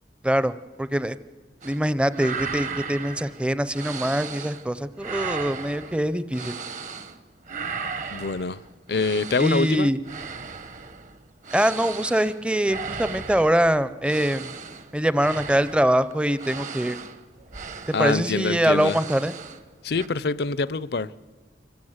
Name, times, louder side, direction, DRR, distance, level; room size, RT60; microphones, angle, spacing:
voice 1, 0.2-1.2 1.6-6.6 9.4-10.0 11.5-14.5 14.9-17.0 18.0-19.3, right 1 dB, 5° right, 0.5 m, -23 dB
sound 1, 1.6-1.8 2.1-4.7 5.0-7.2 7.5-19.7 19.9-20.1, right 5 dB, 40° right, 0.9 m, -36 dB
voice 2, 8.1-8.6 8.9-9.9 17.9-19.0 19.8-21.1, left 4 dB, 60° left, 0.5 m, -25 dB
25.5 x 15.0 x 8.0 m
head